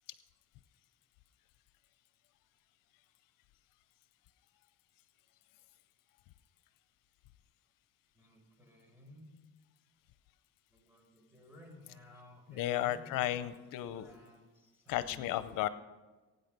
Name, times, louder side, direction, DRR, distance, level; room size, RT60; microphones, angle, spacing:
voice 1, 8.1-9.3 10.7-13.6 13.9-15.6, left 1 dB, 5° right, 0 dB, 5.7 m, -56 dB
voice 2, 12.5-14.1 14.9-15.7, left 13 dB, 85° left, 14 dB, 0.7 m, -34 dB
22.5 x 9.3 x 5.2 m, 1.3 s
cardioid pair, 100°, 32 cm